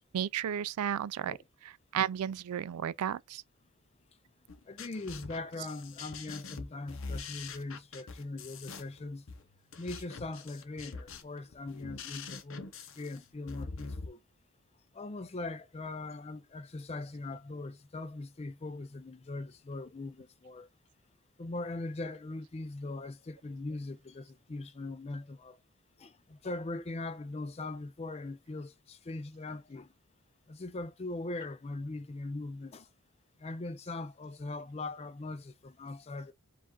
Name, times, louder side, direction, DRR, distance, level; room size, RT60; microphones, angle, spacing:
voice 1, 0.1-1.4 1.9-3.4, right 9 dB, 90° right, 0.3 m, -33 dB
sound 1, 4.5-14.1, left 4 dB, 60° left, 0.8 m, -44 dB
voice 2, 4.7-9.3 9.8-12.7 13.0-14.2 14.9-20.7 21.4-25.6 26.0-29.9 30.5-32.9 33.4-36.3, left 2 dB, 30° left, 0.4 m, -40 dB
4.8 x 2.4 x 3.7 m
head